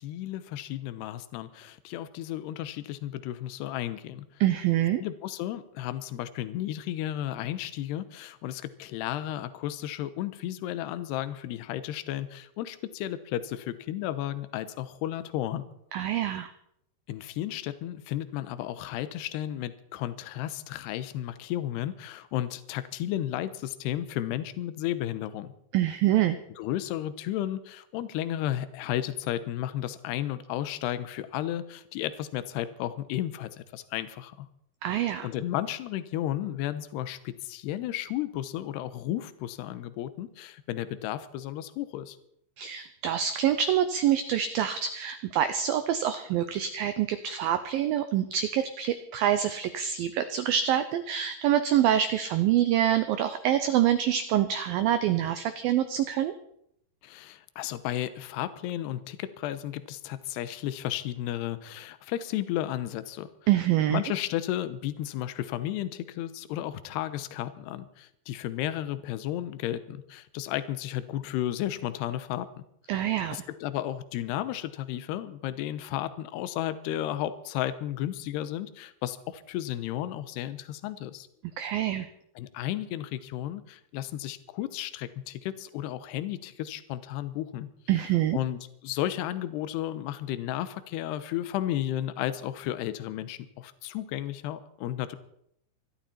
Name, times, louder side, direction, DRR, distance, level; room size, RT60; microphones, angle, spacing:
voice 1, 0.0-4.4 5.0-15.7 17.1-25.5 26.6-34.5 35.2-42.2 57.0-63.3 63.9-81.3 82.4-87.7 87.9-95.2, left 12 dB, 80° left, 13 dB, 2.8 m, -33 dB
voice 2, 4.4-5.0 15.9-16.5 25.7-26.4 34.8-35.3 42.6-56.3 63.5-64.0 72.9-73.4 81.6-82.1 87.9-88.4, right 11 dB, 85° right, 10 dB, 2.0 m, -26 dB
24.5 x 12.0 x 4.3 m, 0.74 s
omnidirectional pair, 5.1 m